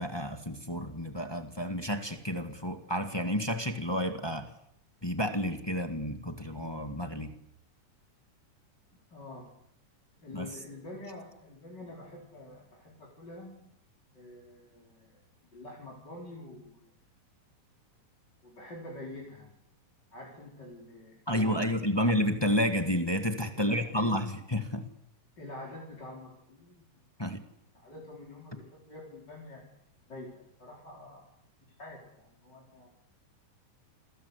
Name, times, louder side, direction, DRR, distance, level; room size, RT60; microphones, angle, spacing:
voice 1, 0.0-4.5 5.0-7.3 10.3-10.5 21.3-24.9 27.2-27.4, equal, 15° left, 6 dB, 1.0 m, -30 dB
voice 2, 9.1-9.5 10.2-13.5 14.1-15.2 15.5-16.9 18.4-19.5 20.1-22.1 23.5-24.2 25.4-27.0 27.7-29.7 30.1-31.2 31.8-32.9, left 1 dB, 30° left, -3 dB, 5.1 m, -46 dB
28.5 x 21.5 x 8.3 m, 0.74 s
omnidirectional pair, 3.9 m